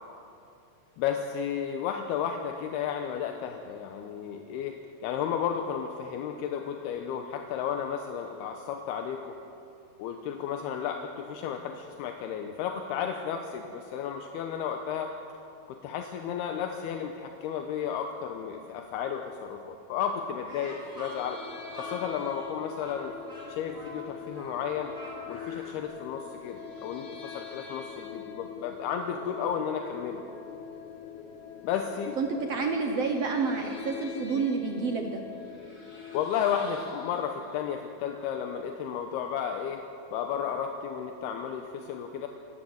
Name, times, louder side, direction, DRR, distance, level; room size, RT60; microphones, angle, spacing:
voice 1, 1.0-9.3 10.0-15.1 15.7-21.4 21.7-23.2 23.5-24.9 25.3-30.2 31.6-32.2 36.1-39.8 40.1-42.3, left 8 dB, 80° left, 4 dB, 2.9 m, -33 dB
Speech, 20.4-25.8, right 1 dB, 10° right, 5.9 m, -45 dB
sound 1, 20.8-36.9, left 8 dB, 60° left, 2.1 m, -43 dB
voice 2, 32.2-35.2, right 4 dB, 75° right, 3 dB, 1.4 m, -29 dB
sound 2, 35.3-37.9, left 1 dB, 30° left, 4.5 m, -51 dB
27.5 x 14.0 x 7.9 m, 2.6 s
omnidirectional pair, 4.6 m